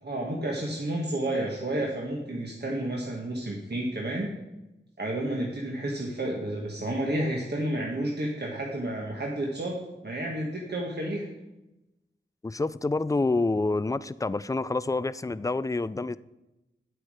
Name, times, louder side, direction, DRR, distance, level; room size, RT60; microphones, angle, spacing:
voice 1, 0.0-4.3 5.0-9.8 10.0-11.3, right 1 dB, 55° right, -2 dB, 1.4 m, -31 dB
voice 2, 12.4-16.2, left 3 dB, 15° left, 17 dB, 0.3 m, -27 dB
9.2 x 7.9 x 4.9 m, 0.98 s
wide cardioid pair, 55°, 20 cm